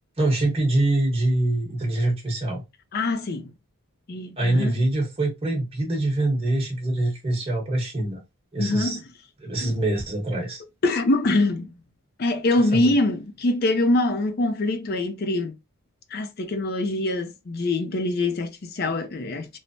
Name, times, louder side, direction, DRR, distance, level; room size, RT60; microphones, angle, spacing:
voice 1, 0.2-2.6 4.4-8.2 8.5-9.0 9.4-10.6 12.7-12.9, right 1 dB, 25° right, 1.0 m, -24 dB
voice 2, 2.9-3.5 4.1-4.8 8.6-9.0 9.6-9.8 10.8-11.7 12.2-15.5 16.1-19.5, left 2 dB, 45° left, 0.5 m, -24 dB
3.1 x 2.1 x 2.6 m
head